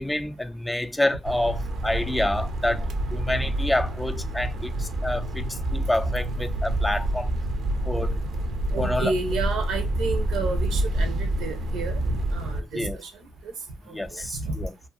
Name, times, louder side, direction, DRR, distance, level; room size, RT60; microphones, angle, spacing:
voice 1, 0.0-7.3 7.9-8.2 8.8-9.1 12.7-13.0 13.9-14.7, left 1 dB, 10° left, 0.4 m, -28 dB
sound 1, 1.3-12.6, right 1 dB, 70° right, 0.6 m, -28 dB
voice 2, 8.7-13.1 13.4-13.5 14.2-14.5, right 4 dB, 90° right, 0.9 m, -30 dB
2.7 x 2.6 x 2.3 m
cardioid pair, 90°, 0 cm